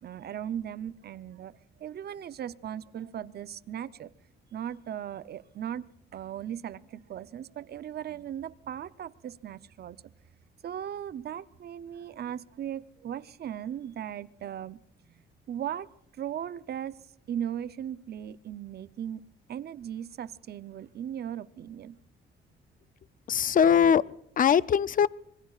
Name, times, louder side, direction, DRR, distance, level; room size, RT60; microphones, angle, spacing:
voice 1, 0.0-4.1 4.5-5.8 6.1-10.0 10.6-17.0 17.3-19.2 19.5-22.0, right 10 dB, 55° right, 15 dB, 0.7 m, -38 dB
voice 2, 23.3-25.1, left 8 dB, 45° left, 19 dB, 0.5 m, -22 dB
26.0 x 21.0 x 2.4 m, 0.74 s
cardioid pair, 90°, 20 cm